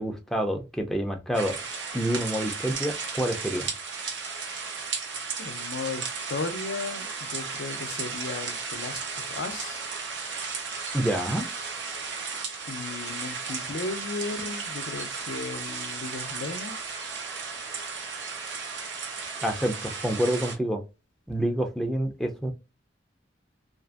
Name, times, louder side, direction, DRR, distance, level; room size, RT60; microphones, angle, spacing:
voice 1, 0.0-1.6 1.9-3.7 10.9-11.5 19.4-20.8 21.3-22.5, right 1 dB, ahead, 0.4 m, -27 dB
sound 1, 1.3-20.6, right 5 dB, 80° right, 0.7 m, -35 dB
voice 2, 5.4-9.8 12.7-16.8, left 4 dB, 85° left, 0.5 m, -35 dB
2.5 x 2.5 x 2.4 m
head